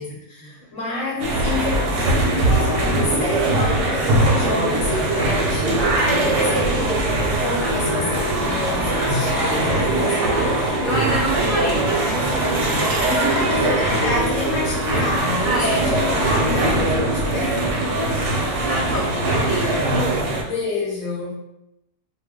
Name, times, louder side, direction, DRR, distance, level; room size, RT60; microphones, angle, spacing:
voice 1, 0.0-1.8 2.3-6.8 7.4-10.6 13.3-17.7 20.4-21.4, left 3 dB, 60° left, -4 dB, 1.1 m, -29 dB
sound 1, 1.2-20.4, right 2 dB, 65° right, 0.8 m, -21 dB
voice 2, 4.4-5.2 6.1-6.6 7.6-8.0 9.9-13.5 15.4-15.9 17.4-20.3, right 1 dB, 20° right, -8 dB, 0.4 m, -29 dB
sound 2, 6.8-14.2, left 1 dB, 75° left, 0.4 m, -34 dB
2.5 x 2.2 x 3.5 m, 0.87 s
omnidirectional pair, 1.6 m